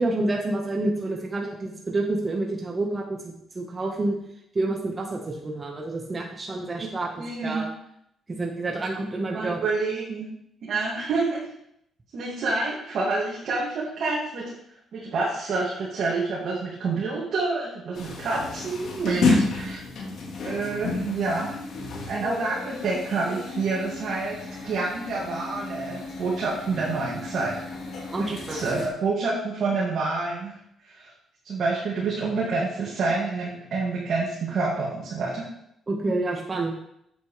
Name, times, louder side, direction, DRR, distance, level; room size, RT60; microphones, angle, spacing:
voice 1, 0.0-4.2 4.5-7.1 7.4-7.7 8.3-9.6 19.2-19.4 28.1-28.9 35.9-36.7, right 2 dB, 30° right, 0 dB, 1.4 m, -28 dB
voice 2, 6.5-6.9 7.2-7.6 9.3-10.3 10.6-11.4 12.1-14.5 14.9-19.3 19.6-19.8 20.4-21.6 22.1-27.7 28.2-30.5 30.8-31.1 31.4-35.5, right 3 dB, 65° right, -5 dB, 2.4 m, -28 dB
sound 1, 17.9-28.9, left 4 dB, 70° left, 1.9 m, -32 dB
8.2 x 8.0 x 3.4 m, 0.75 s
cardioid pair, 90°, 0 cm